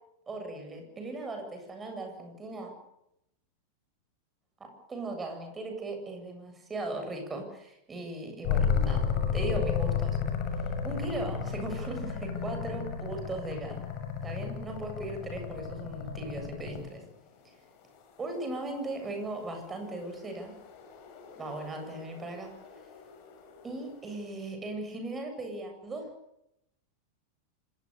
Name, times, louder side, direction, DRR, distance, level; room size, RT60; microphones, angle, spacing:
voice 1, 0.3-2.7 4.6-9.1 9.3-10.2 10.8-13.9 14.2-17.0 17.4-17.6 18.2-20.6 21.4-22.5 23.6-26.1, right 2 dB, 15° right, 4 dB, 7.9 m, -38 dB
sound 1, 8.4-17.0 19.2-23.8, left 6 dB, 45° left, 6.7 m, -33 dB
27.0 x 21.0 x 7.0 m, 0.80 s
figure-of-eight pair, 90°, 0 cm